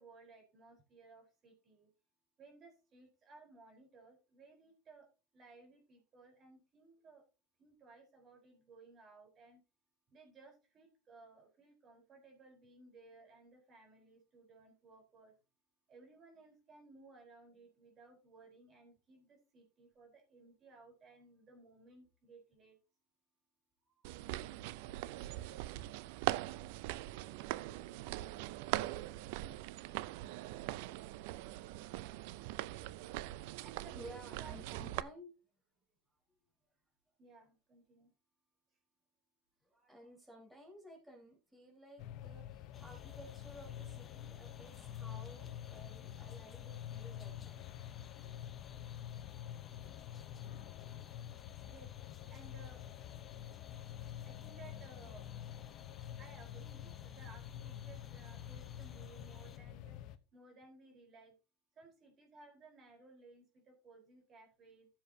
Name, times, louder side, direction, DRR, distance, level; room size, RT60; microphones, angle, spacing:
voice 1, 0.0-1.9 2.4-5.1 5.3-7.2 7.6-9.6 10.1-15.3 15.9-22.8 23.8-23.9 33.6-34.6 37.2-38.1 51.7-51.9 52.3-52.9 54.2-55.4 56.1-60.0 60.3-61.3 61.8-64.9, right 3 dB, 35° right, 1 dB, 4.2 m, -59 dB
sound 1, 24.0-35.0, right 17 dB, 70° right, 0.5 m, -41 dB
voice 2, 33.9-35.3 36.1-36.2 39.6-47.8, equal, 5° right, -3 dB, 4.2 m, -55 dB
sound 2, 42.0-60.2, left 11 dB, 55° left, 0.8 m, -47 dB
sound 3, 42.7-59.6, left 6 dB, 25° left, 1.0 m, -60 dB
14.5 x 7.2 x 2.8 m, 0.29 s
supercardioid pair, 125°, 0 cm